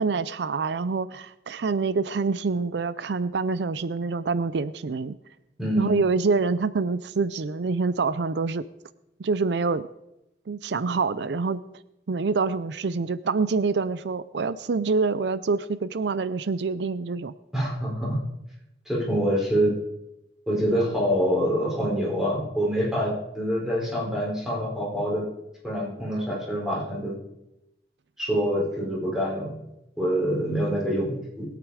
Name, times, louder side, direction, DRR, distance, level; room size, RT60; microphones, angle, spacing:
voice 1, 0.0-5.2 5.8-8.6 9.2-9.8 10.5-11.6 12.1-17.3, right 4 dB, 80° right, 16 dB, 0.5 m, -26 dB
voice 2, 5.6-6.0 17.5-18.2 18.9-19.7 20.5-25.3 25.6-27.1 28.2-29.5 30.0-31.4, equal, 5° right, -4 dB, 4.4 m, -26 dB
21.0 x 8.5 x 4.9 m, 0.90 s
head